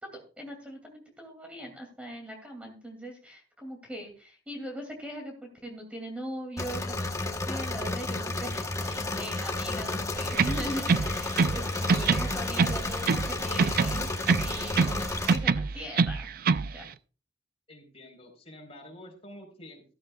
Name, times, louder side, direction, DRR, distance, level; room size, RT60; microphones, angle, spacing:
voice 1, 0.0-7.1 7.4-14.1 14.4-16.3 16.7-16.8, equal, 5° right, 2 dB, 2.5 m, -40 dB
Engine / Mechanisms, 6.6-15.4, left 2 dB, 15° left, 1.1 m, -32 dB
sound 1, 10.3-11.6 11.9-13.3 13.6-15.0 15.3-16.7, right 5 dB, 50° right, 0.4 m, -25 dB
voice 2, 17.7-19.8, left 1 dB, 35° left, 2 dB, 4.3 m, -48 dB
13.5 x 13.5 x 2.3 m, 0.36 s
head